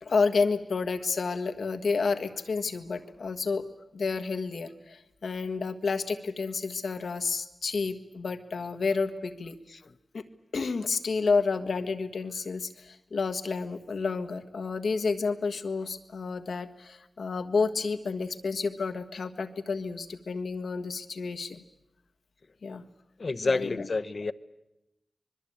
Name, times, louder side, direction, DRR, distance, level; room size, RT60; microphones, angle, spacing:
voice 1, 0.0-3.6 3.9-9.6 10.1-10.2 10.5-21.6 22.6-22.8 23.4-23.9, left 4 dB, 90° left, 8 dB, 1.5 m, -30 dB
voice 2, 23.2-24.3, left 3 dB, 60° left, 11 dB, 0.9 m, -29 dB
25.5 x 21.5 x 8.7 m, 0.91 s
cardioid pair, 50°, 0 cm